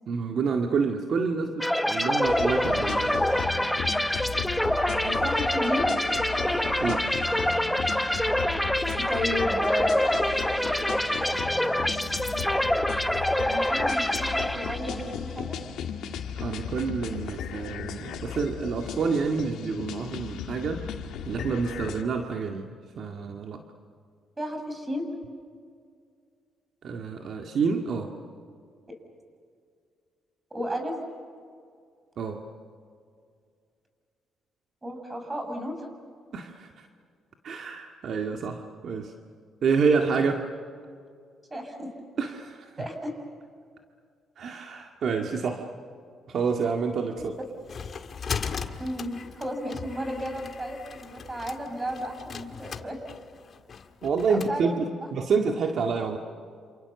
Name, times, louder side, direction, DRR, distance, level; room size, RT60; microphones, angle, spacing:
voice 1, 0.1-3.1 6.8-7.1 16.4-20.8 21.2-22.7 23.0-23.6 26.8-28.1 32.2-32.4 36.3-36.7 37.4-39.1 39.6-40.4 42.2-42.6 44.4-45.7 46.3-47.3 54.0-54.9 55.1-56.2, right 5 dB, 60° right, 3 dB, 1.9 m, -28 dB
sound 1, 1.6-15.2, left 1 dB, 5° left, 1.1 m, -26 dB
sound 2, 2.2-22.0, left 8 dB, 80° left, 2.3 m, -36 dB
voice 2, 5.0-5.9 8.9-10.8 13.4-15.6 24.4-25.1 30.5-30.9 34.8-35.9 41.5-41.9 42.8-43.1 47.2-47.3 48.8-53.0 54.3-55.1, equal, 20° right, 5 dB, 6.2 m, -33 dB
sound 3, 47.2-54.6, left 6 dB, 50° left, 1.8 m, -38 dB
28.0 x 28.0 x 7.1 m, 2.2 s
cardioid pair, 90°, 0 cm